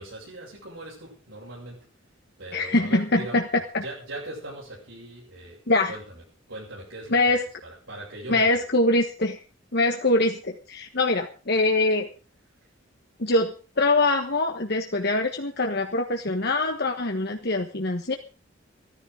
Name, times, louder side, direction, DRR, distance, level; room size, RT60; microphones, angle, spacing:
voice 1, 0.0-1.9 2.4-3.4 3.8-6.2 6.5-8.6, right 1 dB, 75° right, -6 dB, 7.7 m, -40 dB
voice 2, 2.5-3.4 3.7-3.8 5.7-5.9 7.1-7.4 8.3-9.4 9.7-12.1 13.2-18.1, left 2 dB, 55° left, 3 dB, 1.4 m, -23 dB
15.0 x 14.0 x 5.0 m, 0.36 s
head